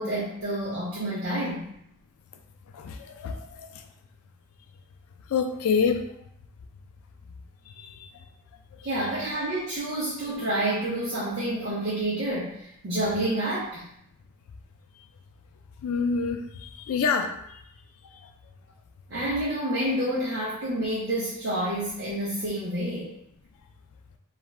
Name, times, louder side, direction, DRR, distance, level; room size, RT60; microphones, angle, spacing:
voice 1, 0.0-1.7 8.8-13.9 19.1-23.1, right 1 dB, 50° right, -7 dB, 0.6 m, -29 dB
voice 2, 2.7-3.9 5.3-6.1 7.7-8.1 8.7-8.9 15.8-17.6 18.1-18.3, left 5 dB, 75° left, 6 dB, 0.3 m, -28 dB
2.3 x 2.1 x 3.2 m, 0.75 s
head